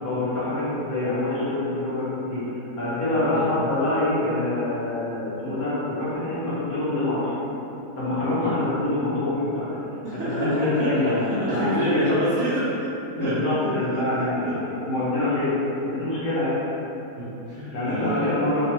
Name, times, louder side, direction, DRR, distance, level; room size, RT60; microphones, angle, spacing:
voice 1, 0.0-2.4 2.8-7.3 7.9-9.8 10.2-12.1 13.1-15.6 15.8-16.5 17.7-18.7, left 2 dB, 65° left, -10 dB, 1.3 m, -25 dB
voice 2, 10.0-12.9 13.2-13.7 14.4-14.5 17.2-18.4, right 1 dB, 75° right, -11 dB, 0.6 m, -27 dB
3.2 x 2.2 x 2.8 m, 3.0 s
omnidirectional pair, 1.8 m